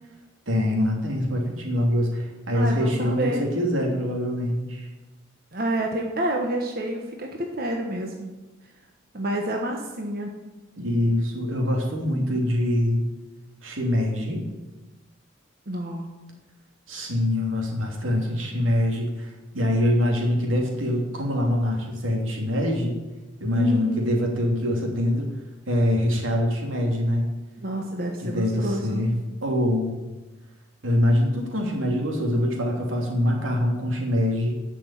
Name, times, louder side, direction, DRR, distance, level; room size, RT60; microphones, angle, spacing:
voice 1, 0.5-4.9 10.8-13.0 13.6-14.5 16.9-23.0 23.4-25.3 25.7-27.3 28.2-29.2 29.4-30.0 30.8-34.5, left 1 dB, 90° right, 0 dB, 3.0 m, -24 dB
voice 2, 2.5-3.4 5.5-8.3 9.1-10.4 15.7-16.1 23.5-24.1 27.6-29.1, right 1 dB, 50° right, 1 dB, 1.3 m, -28 dB
11.5 x 6.1 x 8.8 m, 1.1 s
head